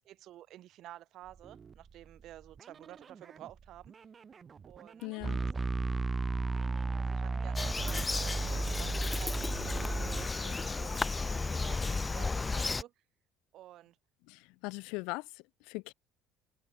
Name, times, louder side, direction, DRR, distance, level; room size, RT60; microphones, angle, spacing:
voice 1, 0.1-4.0 4.7-5.1 7.0-12.9 13.5-14.0, right 13 dB, 60° right, 5.8 m, -52 dB
sound 1, 1.2-12.0, right 6 dB, 40° right, 6.2 m, -55 dB
voice 2, 5.0-5.4 14.3-15.9, left 27 dB, 75° left, 3.1 m, -40 dB
sound 2, 5.2-10.3, right 3 dB, 25° right, 3.1 m, -34 dB
Bird vocalization bird call bird song, 7.6-12.8, left 3 dB, 25° left, 2.2 m, -34 dB
hypercardioid pair, 65°, 0 cm